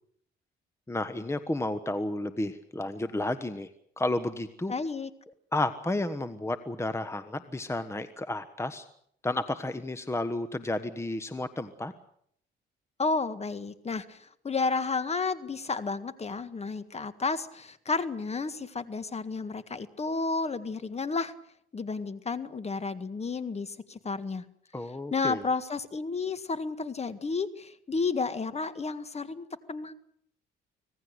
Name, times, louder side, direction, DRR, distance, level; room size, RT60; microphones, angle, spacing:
voice 1, 0.9-3.7 4.0-4.7 5.5-8.8 9.2-11.9 24.7-25.4, left 2 dB, 15° left, 11 dB, 1.3 m, -32 dB
voice 2, 4.7-5.1 13.0-14.2 14.4-21.3 21.7-24.4 25.1-29.9, left 4 dB, 30° left, 12 dB, 1.8 m, -32 dB
25.5 x 18.0 x 8.1 m, 0.68 s
cardioid pair, 90°, 20 cm